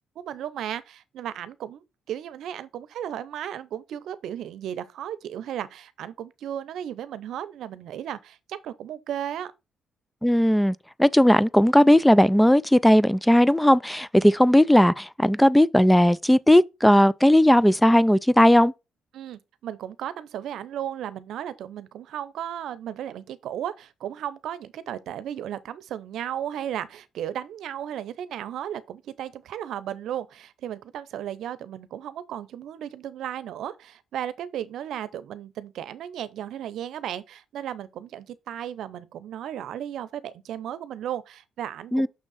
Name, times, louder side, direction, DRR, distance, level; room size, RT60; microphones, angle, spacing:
voice 1, 0.2-9.5 19.1-42.1, right 10 dB, 75° right, 0.7 m, -35 dB
voice 2, 10.2-18.7 41.9-42.1, equal, 5° left, 0.3 m, -17 dB
6.2 x 3.6 x 5.5 m
cardioid pair, 90°, 0 cm